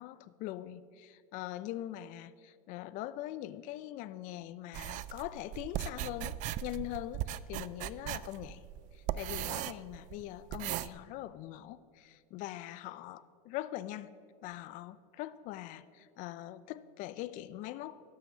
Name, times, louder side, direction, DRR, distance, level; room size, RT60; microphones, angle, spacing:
voice 1, 0.0-8.6 8.9-14.1 14.4-18.0, left 14 dB, 45° left, 16 dB, 0.4 m, -42 dB
sound 1, 4.7-10.9, right 13 dB, 40° right, 0.4 m, -38 dB
12.0 x 6.4 x 5.9 m, 2.2 s
supercardioid pair, 115°, 19 cm